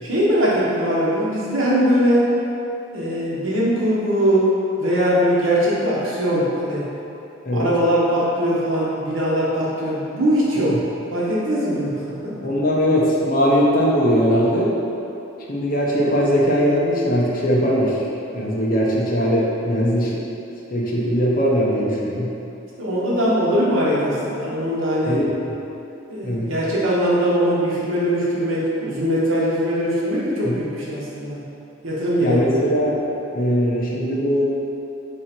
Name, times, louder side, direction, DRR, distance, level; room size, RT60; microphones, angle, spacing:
voice 1, 0.0-2.3 2.9-4.5 4.8-6.9 7.5-10.8 11.1-12.3 22.8-25.2 26.1-31.4 31.8-32.6, equal, 85° right, -6 dB, 1.0 m, -21 dB
voice 2, 12.4-14.7 15.5-18.0 18.3-20.2 20.7-22.3 25.1-25.3 26.2-26.5 30.4-30.6 32.2-33.0 33.3-34.4, equal, 45° left, -4 dB, 0.7 m, -20 dB
3.8 x 3.1 x 4.3 m, 2.9 s
head